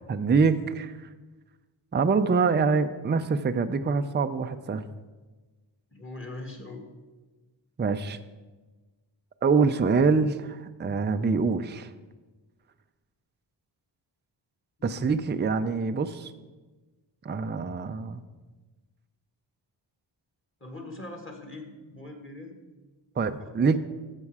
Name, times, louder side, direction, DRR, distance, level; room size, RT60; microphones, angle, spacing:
voice 1, 0.1-0.9 1.9-4.8 7.8-8.2 9.4-11.9 14.8-16.3 17.2-18.2 23.2-23.8, right 5 dB, 25° right, 9 dB, 0.5 m, -25 dB
voice 2, 5.9-6.8 14.8-15.1 20.6-22.6 23.4-23.8, left 2 dB, 25° left, 3 dB, 1.9 m, -42 dB
13.0 x 7.6 x 4.8 m, 1.3 s
wide cardioid pair, 100°, 45 cm